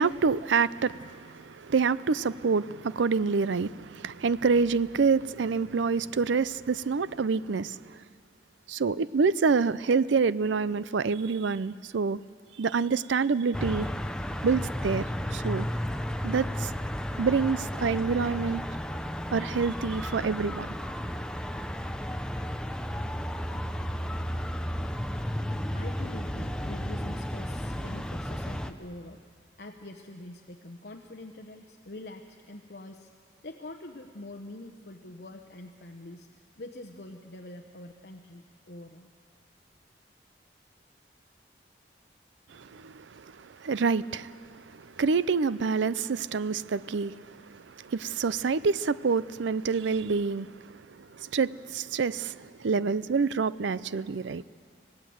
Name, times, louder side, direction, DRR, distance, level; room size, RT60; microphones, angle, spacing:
voice 1, 0.0-8.0 8.7-12.2 12.6-13.9 14.4-15.7 16.2-16.7 17.2-18.6 19.3-20.7 42.5-44.3 44.7-54.4, right 5 dB, 85° right, 0.5 m, -27 dB
sound 1, 13.5-28.7, equal, 5° left, 0.6 m, -33 dB
voice 2, 25.7-29.2 29.6-33.1 33.4-39.1, left 1 dB, 60° left, 1.0 m, -44 dB
26.0 x 17.5 x 7.9 m
head